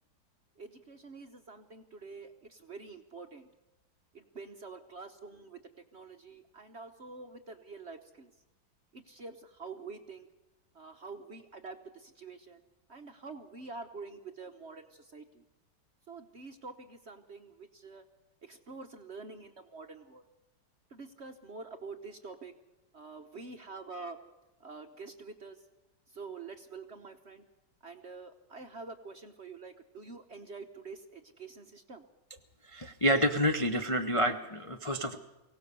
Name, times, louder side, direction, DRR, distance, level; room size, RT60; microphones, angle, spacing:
voice 1, 0.6-3.5 4.1-5.6 5.9-8.3 8.9-10.3 10.7-12.6 12.9-15.4 16.1-18.0 18.4-20.2 20.9-22.5 22.9-24.2 24.6-25.7 26.1-27.4 27.8-32.1, right 4 dB, 45° right, 6 dB, 0.9 m, -47 dB
voice 2, 32.6-35.2, equal, 35° left, 4 dB, 0.5 m, -28 dB
23.5 x 17.0 x 6.8 m, 1.0 s
omnidirectional pair, 2.1 m